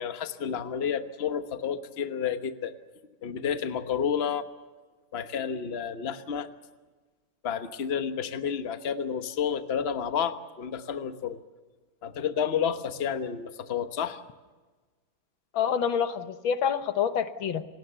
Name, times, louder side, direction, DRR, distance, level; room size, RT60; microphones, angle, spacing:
voice 1, 0.0-2.7 3.2-4.4 5.1-6.5 7.4-11.4 12.0-14.2, left 7 dB, 35° left, 8 dB, 1.2 m, -30 dB
voice 2, 15.5-17.7, left 7 dB, 80° left, 10 dB, 1.9 m, -27 dB
28.0 x 19.0 x 6.9 m, 1.3 s
omnidirectional pair, 2.2 m